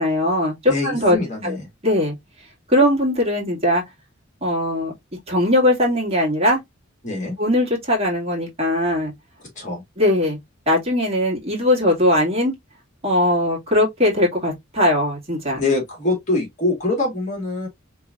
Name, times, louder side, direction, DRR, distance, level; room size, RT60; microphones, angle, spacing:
voice 1, 0.0-1.2 1.4-1.6 1.8-2.1 2.7-3.8 4.4-4.9 5.3-6.6 7.4-9.1 10.0-10.4 10.7-12.5 13.0-15.6, left 1 dB, 30° right, 2.2 m, -19 dB
voice 2, 0.7-1.7 7.0-7.3 9.6-9.8 15.6-17.7, left 2 dB, 35° left, 2.2 m, -24 dB
4.8 x 3.7 x 2.5 m
head